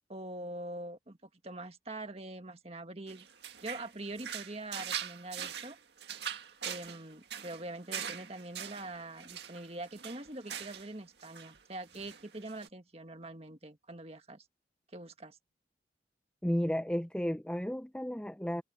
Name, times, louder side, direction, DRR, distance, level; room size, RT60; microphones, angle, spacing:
voice 1, 0.1-1.2 1.4-3.3 3.6-5.8 6.6-14.5 14.9-15.4, right 2 dB, 35° right, 1.7 m, -44 dB
sound 1, 3.1-10.9 11.2-11.6 11.9-12.7, right 8 dB, 65° right, 2.0 m, -42 dB
voice 2, 16.4-18.6, equal, 5° left, 0.5 m, -33 dB
head